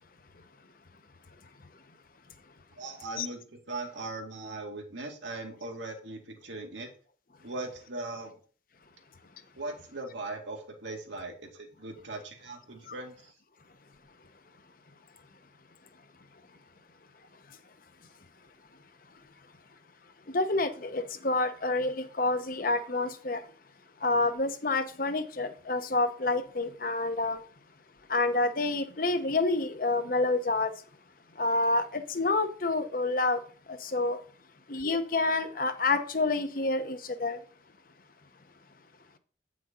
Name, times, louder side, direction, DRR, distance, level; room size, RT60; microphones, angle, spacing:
voice 1, 2.8-6.9 7.4-8.3 9.6-13.3, right 2 dB, 80° right, 2.2 m, -39 dB
voice 2, 20.3-23.4 24.0-27.4 28.1-30.7 31.4-33.4 33.7-34.2 34.7-37.4, left 2 dB, 50° left, 0.9 m, -28 dB
9.0 x 6.2 x 4.3 m
head